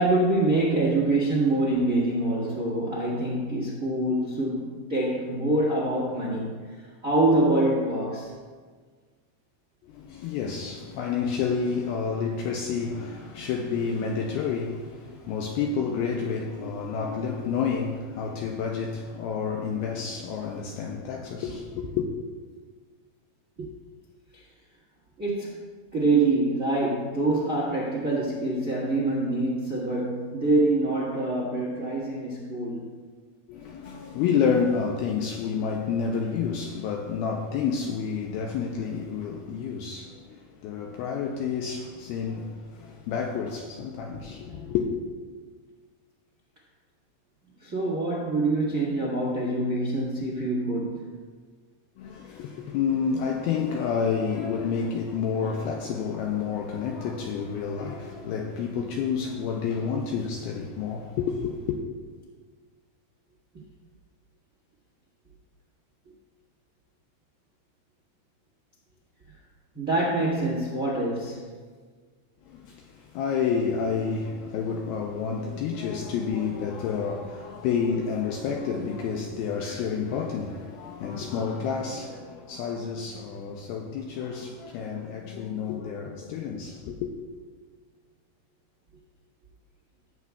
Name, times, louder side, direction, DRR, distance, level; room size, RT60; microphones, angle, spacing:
voice 1, 0.0-8.3 23.6-23.7 24.3-24.4 25.2-25.6 25.9-32.8 47.6-51.0 69.7-71.4, right 2 dB, 60° right, 0.8 m, -25 dB
voice 2, 9.8-22.1 33.5-44.9 52.0-61.8 72.5-87.1, left 6 dB, 85° left, 2.2 m, -29 dB
17.5 x 8.2 x 2.3 m
omnidirectional pair, 5.0 m